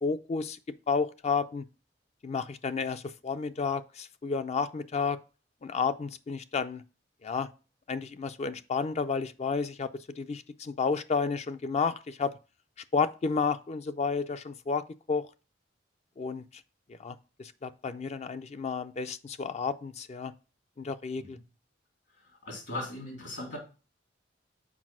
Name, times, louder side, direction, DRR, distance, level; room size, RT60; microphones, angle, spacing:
voice 1, 0.0-0.6 0.9-1.6 2.2-5.2 5.6-6.8 7.2-7.5 7.9-9.9 10.2-12.3 12.9-15.2 16.2-16.4 17.0-20.3 20.8-21.4, left 5 dB, 35° left, 0.4 m, -31 dB
voice 2, 22.4-23.6, left 1 dB, 75° left, 3.5 m, -38 dB
6.1 x 4.7 x 6.0 m
head